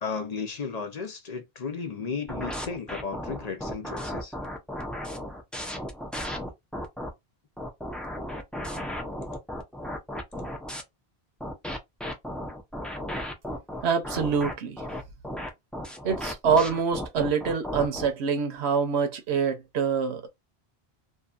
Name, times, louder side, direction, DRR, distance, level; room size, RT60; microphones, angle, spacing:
voice 1, 0.0-4.3, left 5 dB, 50° left, 0.6 m, -34 dB
sound 1, 2.3-7.1 7.6-10.8 11.4-18.1, left 1 dB, ahead, 0.3 m, -35 dB
voice 2, 13.8-14.8 16.0-20.3, right 6 dB, 85° right, 1.0 m, -25 dB
2.7 x 2.6 x 2.4 m
omnidirectional pair, 1.1 m